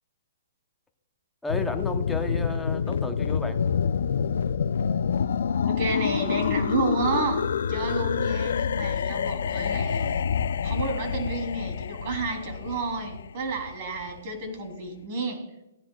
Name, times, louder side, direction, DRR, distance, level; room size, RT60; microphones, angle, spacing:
voice 1, 1.4-3.6, left 3 dB, 5° left, 4 dB, 0.8 m, -33 dB
sound 1, 1.5-14.2, left 7 dB, 75° left, 0.5 m, -27 dB
voice 2, 5.7-10.2 10.6-15.5, right 2 dB, 40° right, 4 dB, 3.0 m, -30 dB
17.0 x 10.0 x 2.3 m, 0.94 s
hypercardioid pair, 155°, 0 cm